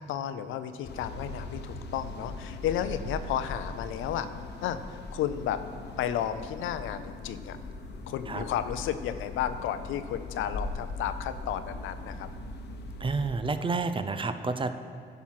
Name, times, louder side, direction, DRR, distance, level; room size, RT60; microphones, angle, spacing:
voice 1, 0.0-4.3 4.6-5.6 6.0-7.6 8.1-12.3, left 10 dB, 85° left, 11 dB, 0.5 m, -33 dB
sound 1, 0.8-13.3, left 3 dB, 60° left, 0.9 m, -40 dB
voice 2, 13.0-14.7, right 4 dB, 25° right, 10 dB, 0.5 m, -29 dB
11.0 x 5.9 x 5.8 m, 2.2 s
cardioid pair, 90°, 20 cm